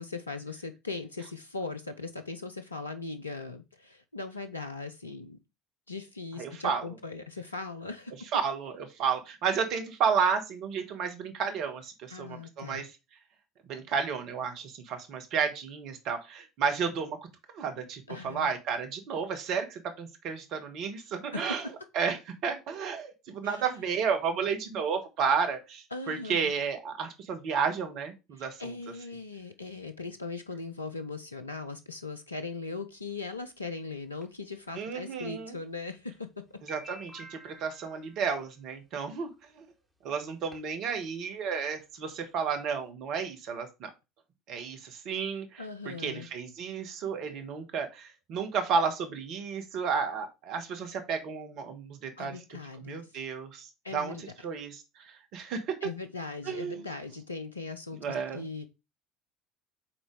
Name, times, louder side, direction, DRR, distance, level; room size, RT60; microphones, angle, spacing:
voice 1, 0.0-5.4 5.9-8.1 12.1-12.9 18.1-18.5 21.3-21.7 23.4-23.6 25.9-26.5 28.3-36.4 45.6-46.3 52.2-53.0 53.8-54.2 55.8-58.7, left 3 dB, 90° left, 0.4 m, -39 dB
voice 2, 6.4-6.9 8.3-12.9 13.7-17.2 17.5-21.7 21.9-22.2 22.4-28.7 34.7-35.6 36.6-39.3 39.5-39.7 40.0-43.9 44.5-52.4 52.8-53.7 53.9-55.9 56.4-56.8 58.0-58.4, right 6 dB, 55° right, 1.4 m, -32 dB
sound 1, 33.1-33.2 34.2-34.3 35.5-35.6 36.1-36.2 36.5-38.5 39.6-39.7 40.1-40.2 40.5-40.9 41.2-41.3 41.5-41.6 41.9-42.1, equal, 5° right, 2.8 m, -49 dB
5.9 x 4.0 x 4.7 m
figure-of-eight pair, 65°, 0 cm